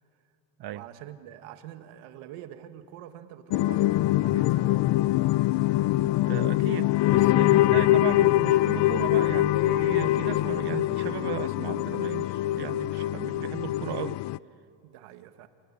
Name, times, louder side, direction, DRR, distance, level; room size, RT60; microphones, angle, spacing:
voice 1, 0.7-4.8 14.8-15.5, right 11 dB, 90° right, 1.7 m, -45 dB
sound 1, 3.5-14.4, left 15 dB, 60° left, 0.5 m, -24 dB
voice 2, 6.3-14.2, right 12 dB, 50° right, 0.9 m, -36 dB
28.5 x 19.5 x 10.0 m
cardioid pair, 105°, 49 cm